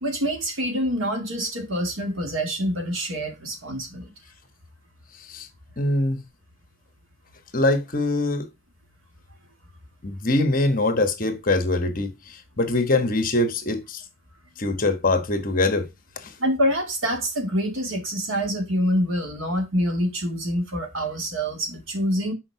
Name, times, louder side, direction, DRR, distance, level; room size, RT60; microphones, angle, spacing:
voice 1, 0.0-4.1 16.4-22.3, equal, 75° right, 2.2 m, -26 dB
voice 2, 5.8-6.2 7.5-8.5 10.0-14.0 14.6-15.9 16.2-16.3, left 2 dB, 40° left, 1.2 m, -23 dB
6.3 x 4.7 x 4.6 m
head